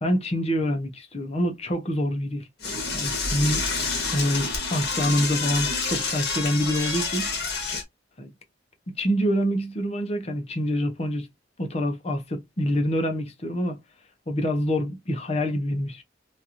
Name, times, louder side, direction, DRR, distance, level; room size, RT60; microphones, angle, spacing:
voice 1, 0.0-2.5 2.9-3.6 4.1-7.3 8.2-8.3 8.9-11.3 11.6-13.8 14.3-16.0, equal, 35° left, 0.7 m, -26 dB
Door / Toilet flush, 2.6-7.8, left 4 dB, 60° left, 1.2 m, -28 dB
3.0 x 2.5 x 2.7 m
head